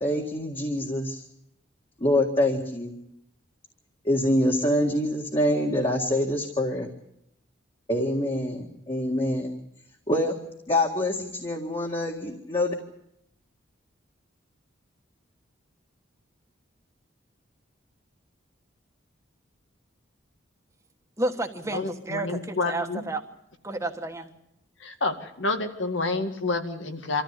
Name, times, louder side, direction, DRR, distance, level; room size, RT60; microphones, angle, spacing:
voice 1, 0.0-1.2 2.0-2.9 4.1-6.9 7.9-9.6 10.1-10.3 10.7-12.7, left 1 dB, 30° left, 0 dB, 1.9 m, -25 dB
voice 2, 21.2-23.2 23.6-24.3, right 2 dB, 15° right, 4 dB, 1.4 m, -31 dB
voice 3, 21.7-23.0 24.8-27.2, left 3 dB, 75° left, 6 dB, 2.1 m, -29 dB
25.5 x 14.5 x 8.3 m, 0.78 s
head